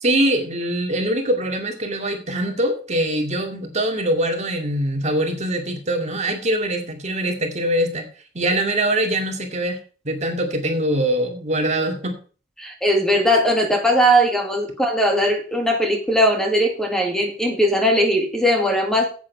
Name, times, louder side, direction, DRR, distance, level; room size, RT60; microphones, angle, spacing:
voice 1, 0.0-8.0 8.3-9.8 10.0-12.2, right 1 dB, 40° right, 3 dB, 2.2 m, -23 dB
voice 2, 12.6-19.1, equal, 5° left, 3 dB, 1.9 m, -19 dB
9.5 x 8.5 x 5.6 m, 0.39 s
head